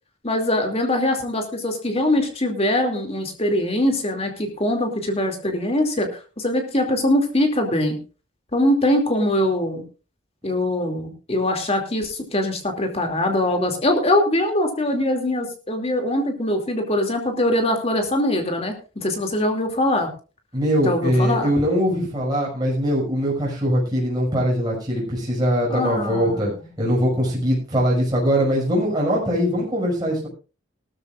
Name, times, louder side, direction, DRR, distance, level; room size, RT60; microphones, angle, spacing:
voice 1, 0.2-8.0 8.5-9.8 10.4-20.1 20.8-21.5 25.7-26.5, left 1 dB, 30° left, 4 dB, 2.7 m, -22 dB
voice 2, 20.5-26.5 26.8-30.3, equal, 20° right, -4 dB, 6.0 m, -21 dB
18.5 x 13.5 x 2.5 m, 0.34 s
head